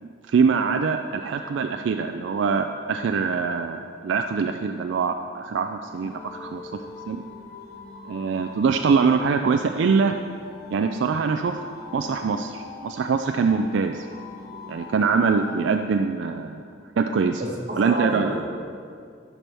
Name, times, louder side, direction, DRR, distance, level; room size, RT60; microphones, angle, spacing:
voice 1, 0.0-6.1 6.4-6.6 7.1-7.2 8.1-10.1 10.7-11.6 11.9-14.1 14.7-16.6 17.0-17.4 17.7-18.3, right 5 dB, 75° right, 6 dB, 0.3 m, -23 dB
sound 1, 5.9-15.7, left 3 dB, 50° left, 1.0 m, -42 dB
voice 2, 17.4-18.6, right 1 dB, 40° right, -2 dB, 1.4 m, -29 dB
12.5 x 6.1 x 3.4 m, 2.2 s
head